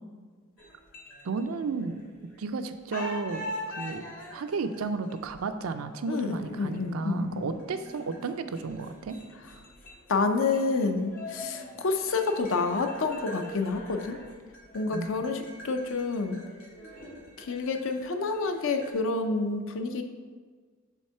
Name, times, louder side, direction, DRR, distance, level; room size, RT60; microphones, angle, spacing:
sound 1, 0.6-2.5 2.9-18.9, left 1 dB, 85° left, 1.7 m, -44 dB
voice 1, 1.2-2.0 2.4-4.0 4.3-9.2 14.9-15.3, right 4 dB, 80° right, 9 dB, 0.4 m, -33 dB
voice 2, 6.1-7.5 10.1-14.2 14.7-16.4 17.4-20.0, left 3 dB, 65° left, 6 dB, 0.5 m, -28 dB
6.3 x 3.5 x 5.5 m, 1.5 s
head